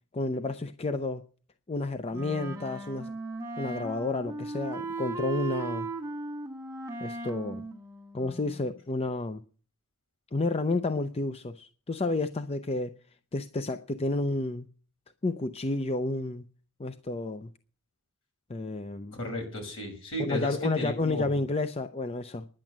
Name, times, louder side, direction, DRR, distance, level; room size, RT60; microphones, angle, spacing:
voice 1, 0.1-1.2 1.7-3.2 3.6-5.9 7.0-7.6 8.1-9.4 10.3-12.9 13.3-14.7 15.2-16.4 16.8-17.5 18.5-19.2 20.2-22.5, left 2 dB, 25° left, 9 dB, 0.5 m, -31 dB
Wind instrument woodwind instrument, 2.1-8.7, right 3 dB, 15° right, 1.6 m, -37 dB
voice 2, 19.1-21.4, equal, 60° left, 1 dB, 5.8 m, -34 dB
11.0 x 9.0 x 7.3 m, 0.42 s
head